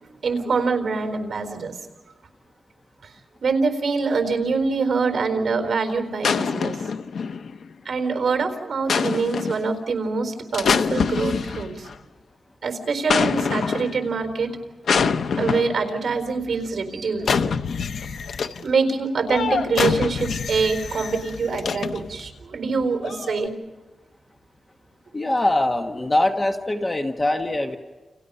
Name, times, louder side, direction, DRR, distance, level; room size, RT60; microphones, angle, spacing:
voice 1, 0.0-1.8 3.4-6.8 7.8-11.9 12.6-14.6 15.4-17.3 18.6-23.5, right 4 dB, 55° right, 6 dB, 4.1 m, -24 dB
sound 1, 6.2-7.7 8.9-9.7 10.5-11.9 13.1-14.1 14.9-15.9 17.2-18.7 19.3-22.2 23.0-23.5, left 6 dB, 80° left, 0.9 m, -25 dB
voice 2, 25.1-27.8, left 1 dB, 20° left, 4 dB, 1.3 m, -22 dB
30.0 x 29.5 x 5.6 m, 1.3 s
wide cardioid pair, 170°, 0 cm